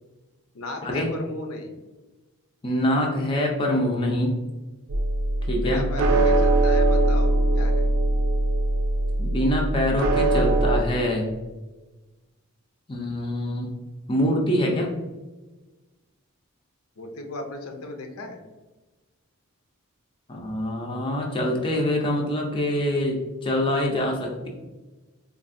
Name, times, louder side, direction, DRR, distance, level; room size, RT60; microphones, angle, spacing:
voice 1, 0.5-1.7 5.6-7.9 17.0-18.4, left 2 dB, 80° left, 4 dB, 0.6 m, -36 dB
voice 2, 2.6-4.3 5.4-5.9 9.2-11.3 12.9-13.7 14.1-14.9 20.3-24.5, left 1 dB, 25° left, 0 dB, 0.5 m, -25 dB
sound 1, 4.9-10.8, right 2 dB, 85° right, 0.4 m, -21 dB
4.2 x 2.6 x 2.5 m, 1.2 s
head